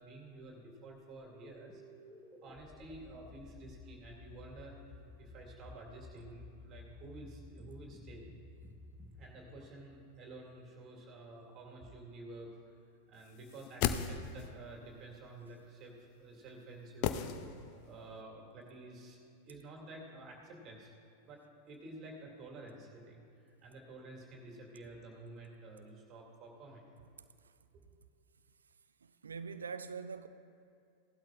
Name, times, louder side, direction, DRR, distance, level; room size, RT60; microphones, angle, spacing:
voice 1, 0.0-1.8 2.4-8.3 9.1-12.8 13.1-17.3 17.8-19.2 19.5-20.9 21.3-26.9 27.7-27.8, right 2 dB, 30° right, 2.4 m, -51 dB
sound 1, 1.3-10.7, left 2 dB, ahead, 1.2 m, -54 dB
sound 2, 13.4-14.6 17.0-17.9 18.2-18.3, left 9 dB, 45° left, 0.5 m, -35 dB
voice 2, 27.2-27.5 29.0-30.3, right 5 dB, 70° right, 0.4 m, -44 dB
17.5 x 12.0 x 2.5 m
figure-of-eight pair, 90°, 0 cm